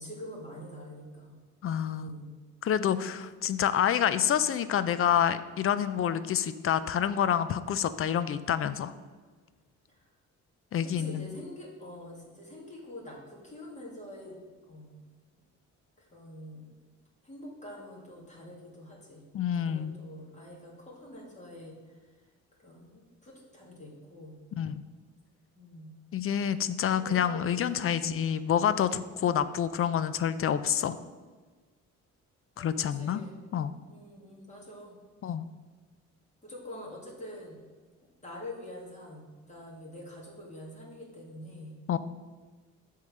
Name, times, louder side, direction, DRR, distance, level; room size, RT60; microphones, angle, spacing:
voice 1, 0.0-1.4 1.9-2.4 9.9-10.1 10.8-14.4 14.7-15.0 16.0-16.6 17.2-19.2 19.5-22.1 22.6-24.4 25.6-25.9 26.9-28.1 32.5-33.4 33.9-35.0 36.4-37.6 38.2-41.7, left 1 dB, 25° left, -4 dB, 2.3 m, -45 dB
voice 2, 1.6-2.1 2.6-8.9 10.7-11.3 19.3-20.0 24.6-24.8 26.1-31.0 32.6-33.2 33.5-33.7 35.2-35.4 41.9-42.0, left 9 dB, 45° left, 13 dB, 0.4 m, -28 dB
7.5 x 3.8 x 6.5 m, 1.4 s
cardioid pair, 90°, 30 cm